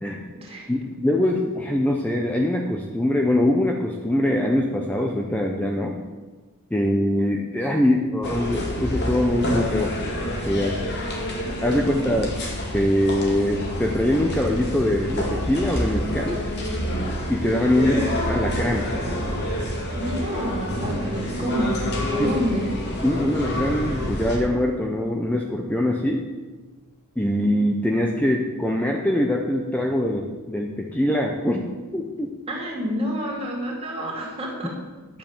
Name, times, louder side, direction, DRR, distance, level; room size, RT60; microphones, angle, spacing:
voice 1, 0.7-6.0 6.7-9.9 10.4-10.8 11.6-12.4 12.7-16.4 17.3-18.9 23.0-26.3 27.2-32.3, left 1 dB, 5° left, 1 dB, 0.8 m, -23 dB
sound 1, 8.2-24.4, equal, 50° left, 2.1 m, -28 dB
voice 2, 19.9-21.8 22.1-22.7 32.5-34.7, equal, 25° right, -2 dB, 2.7 m, -28 dB
10.0 x 7.7 x 7.3 m, 1.3 s
head